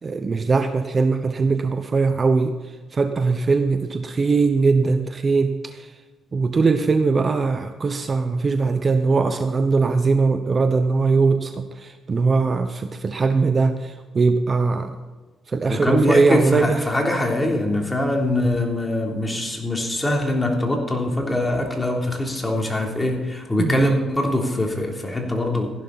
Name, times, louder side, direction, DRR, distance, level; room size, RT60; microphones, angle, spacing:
voice 1, 0.0-2.5 2.9-5.9 6.3-15.0 15.5-16.8 23.6-23.9, right 4 dB, 35° right, 8 dB, 0.9 m, -20 dB
voice 2, 15.7-25.7, left 1 dB, 15° left, 1 dB, 3.3 m, -23 dB
15.5 x 11.0 x 4.2 m, 1.3 s
cardioid pair, 90°, 0 cm